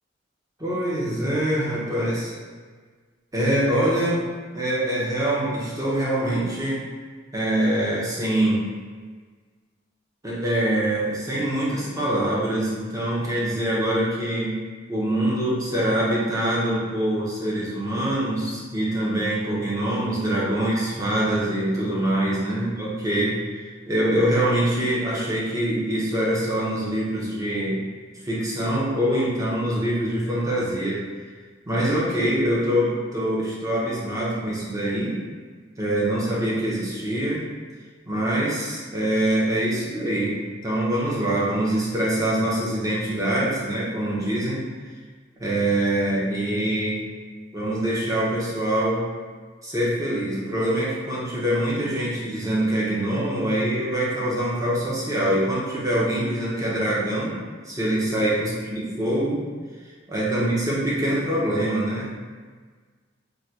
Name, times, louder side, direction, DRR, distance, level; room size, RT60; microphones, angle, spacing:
voice 1, 0.6-2.3 3.3-4.2 4.5-6.8 7.3-8.6 10.2-14.6 14.9-27.8 28.2-31.0 31.7-35.2 35.8-37.4 38.1-44.6 45.4-47.0 47.5-49.0 49.6-57.4 57.6-58.5 58.8-59.4 60.1-62.1, right 1 dB, 20° right, -7 dB, 0.7 m, -24 dB
3.7 x 2.2 x 2.8 m, 1.5 s
head